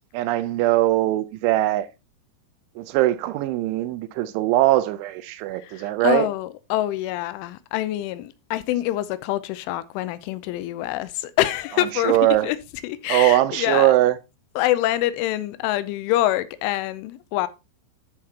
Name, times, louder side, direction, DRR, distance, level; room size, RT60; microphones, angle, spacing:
voice 1, 0.1-1.9 2.8-6.3 12.0-12.5 13.1-14.2, right 15 dB, 85° right, 3.0 m, -21 dB
voice 2, 5.5-12.6 12.8-14.0 14.6-17.5, left 14 dB, 85° left, 3.2 m, -25 dB
13.5 x 5.8 x 2.9 m
omnidirectional pair, 5.5 m